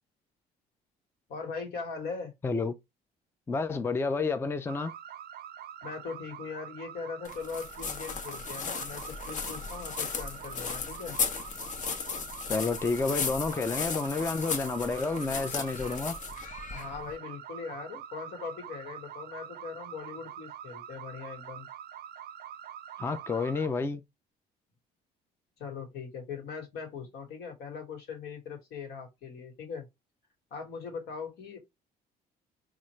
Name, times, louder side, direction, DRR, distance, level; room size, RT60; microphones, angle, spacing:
voice 1, 1.3-2.3 5.8-11.2 16.7-21.7 25.6-29.9 30.5-31.6, left 5 dB, 75° left, 1.5 m, -40 dB
voice 2, 3.5-4.9 12.5-16.2 23.0-24.0, left 4 dB, 15° left, 0.4 m, -30 dB
sound 1, 4.7-23.7, right 10 dB, 70° right, 0.5 m, -45 dB
sound 2, 7.3-17.1, left 5 dB, 45° left, 0.8 m, -36 dB
4.2 x 2.4 x 3.0 m
cardioid pair, 110°, 17 cm